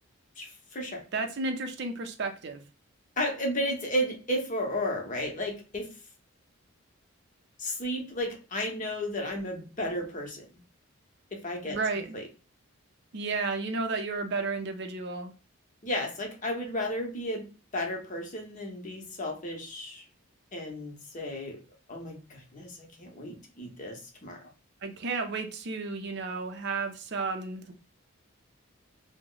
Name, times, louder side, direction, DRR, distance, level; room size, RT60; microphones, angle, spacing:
voice 1, 0.4-1.0 3.2-6.0 7.6-10.6 11.3-12.3 15.8-20.0 20.5-21.6 21.9-24.4, left 1 dB, 35° left, 1 dB, 0.8 m, -33 dB
voice 2, 1.1-2.6 11.6-12.2 13.1-15.3 24.8-27.7, right 3 dB, 55° right, 5 dB, 0.5 m, -32 dB
2.9 x 2.1 x 3.7 m, 0.34 s
head